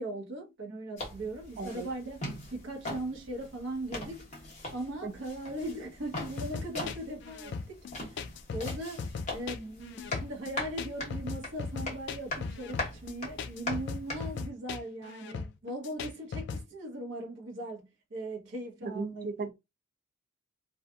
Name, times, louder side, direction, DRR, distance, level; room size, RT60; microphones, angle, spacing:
voice 1, 0.0-4.2 4.7-8.2 8.5-19.5, right 1 dB, 60° right, 0.8 m, -39 dB
sound 1, 1.0-14.4, left 2 dB, 35° left, 1.0 m, -41 dB
sound 2, 6.4-16.6, left 4 dB, 60° left, 0.3 m, -38 dB
voice 2, 18.8-19.5, right 4 dB, 45° right, 0.4 m, -36 dB
2.6 x 2.4 x 2.2 m
head